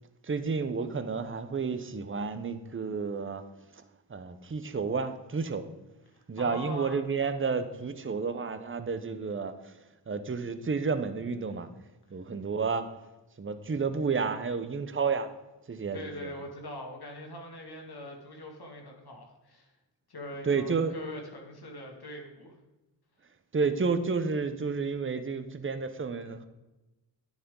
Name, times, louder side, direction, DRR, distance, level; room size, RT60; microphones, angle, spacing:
voice 1, 0.2-3.4 4.1-5.6 6.3-9.7 10.1-11.7 12.1-12.9 13.4-15.3 15.7-16.3 20.4-20.9 23.5-26.5, right 5 dB, 30° right, 0.8 m, -31 dB
voice 2, 6.1-7.1 15.9-19.7 20.1-22.5, left 1 dB, 60° left, 2.3 m, -42 dB
10.5 x 9.7 x 3.8 m
wide cardioid pair, 90°, 44 cm